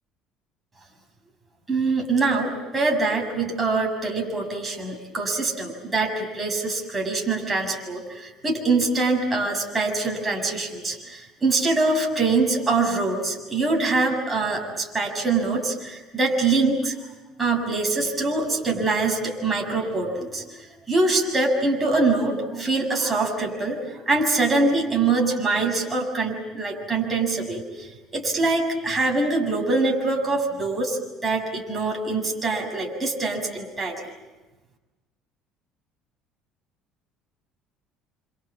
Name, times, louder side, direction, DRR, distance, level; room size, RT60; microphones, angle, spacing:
voice 1, 1.7-16.9 17.4-23.8 24.1-34.0, right 3 dB, 15° right, 1 dB, 7.2 m, -24 dB
29.5 x 26.5 x 7.4 m, 1.1 s
cardioid pair, 120°, 0 cm